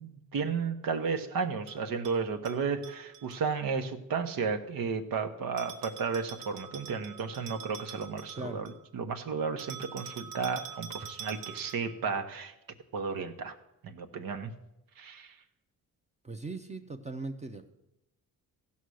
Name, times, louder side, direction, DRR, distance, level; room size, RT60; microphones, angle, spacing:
voice 1, 0.0-12.5 12.9-13.6 13.8-14.5 15.0-15.4, right 5 dB, 70° right, 7 dB, 1.1 m, -33 dB
Bell, 1.7-3.4 5.6-8.8 9.6-12.0, right 7 dB, 85° right, 1.3 m, -46 dB
voice 2, 8.4-8.7 10.2-10.3 16.2-17.7, right 2 dB, 20° right, 5 dB, 0.7 m, -39 dB
16.0 x 5.7 x 6.4 m, 0.90 s
cardioid pair, 105°, 35 cm